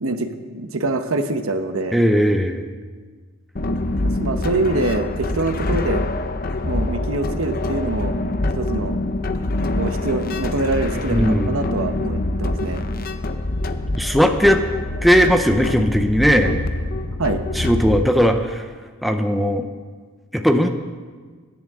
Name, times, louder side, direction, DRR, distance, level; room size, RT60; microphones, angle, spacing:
voice 1, 0.0-2.0 4.0-6.0 6.6-8.1 8.5-9.0 9.8-12.8 17.2-17.4, right 2 dB, 75° right, 7 dB, 1.1 m, -24 dB
voice 2, 1.9-2.7 11.0-11.6 14.0-14.6 15.0-16.6 17.6-18.6 19.0-19.6 20.3-20.7, equal, ahead, 4 dB, 0.7 m, -17 dB
sound 1, 3.6-18.0, left 2 dB, 45° left, 0.7 m, -25 dB
24.0 x 10.5 x 3.7 m, 1.5 s
head